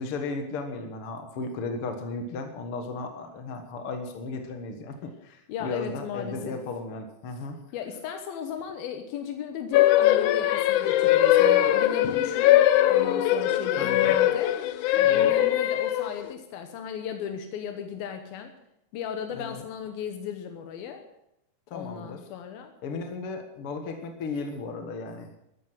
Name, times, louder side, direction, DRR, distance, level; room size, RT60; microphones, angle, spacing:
voice 1, 0.0-7.6 13.8-14.2 15.0-15.3 19.3-19.6 21.7-22.2 22.8-25.3, left 3 dB, 50° left, 5 dB, 1.8 m, -35 dB
voice 2, 5.5-6.6 7.7-14.6 15.0-18.5 18.9-21.0 21.7-22.7, left 8 dB, 90° left, 6 dB, 3.0 m, -36 dB
sound 1, 9.7-16.3, left 13 dB, 75° left, 2.0 m, -21 dB
13.5 x 12.5 x 6.3 m, 0.81 s
omnidirectional pair, 4.1 m